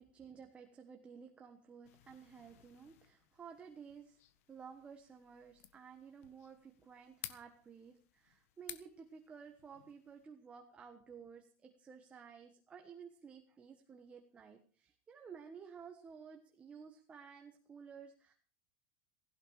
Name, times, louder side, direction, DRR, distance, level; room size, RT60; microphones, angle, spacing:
voice 1, 0.0-4.2 4.5-18.3, right 6 dB, 15° right, 4 dB, 1.4 m, -54 dB
sound 1, 1.8-10.3, left 13 dB, 70° left, 1.6 m, -56 dB
17.0 x 16.0 x 4.9 m, 0.41 s
supercardioid pair, 165°, 8 cm